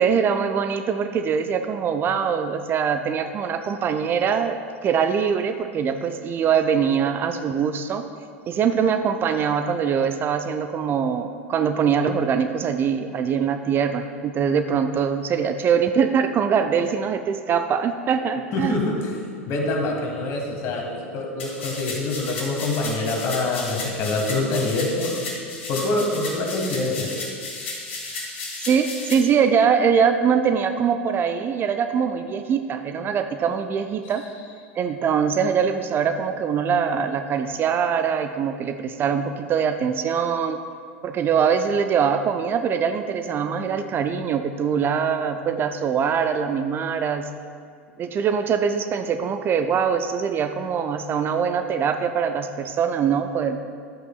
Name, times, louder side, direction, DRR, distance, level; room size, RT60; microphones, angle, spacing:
voice 1, 0.0-8.0 8.5-18.8 28.6-34.2 34.8-40.6 41.0-47.3 48.0-53.6, right 7 dB, 30° right, 8 dB, 0.4 m, -23 dB
voice 2, 18.5-25.2 25.7-27.1 34.0-34.1, left 2 dB, 45° left, 1 dB, 1.6 m, -25 dB
sound 1, 21.4-29.1, left 3 dB, 65° left, 2.1 m, -34 dB
11.5 x 8.1 x 2.3 m, 2.1 s
figure-of-eight pair, 85°, 7 cm